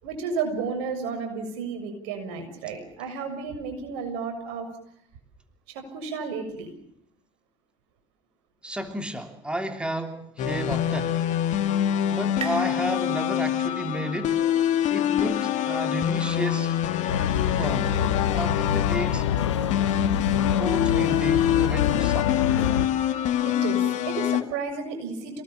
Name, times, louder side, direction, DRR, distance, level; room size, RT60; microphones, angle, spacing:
voice 1, 0.0-4.7 5.7-6.7 23.5-25.4, right 5 dB, 70° right, 6 dB, 7.1 m, -32 dB
voice 2, 8.6-11.2 12.1-14.4 14.9-16.8 17.6-18.0 18.3-19.3 20.6-22.4, right 1 dB, 5° right, 6 dB, 3.2 m, -32 dB
sound 1, 10.4-24.4, left 10 dB, 55° left, 2.1 m, -25 dB
sound 2, 10.9-14.3, right 8 dB, 40° right, 3.9 m, -43 dB
sound 3, 17.1-22.9, left 9 dB, 85° left, 1.4 m, -26 dB
28.5 x 19.5 x 7.3 m, 0.71 s
hypercardioid pair, 70°, 15 cm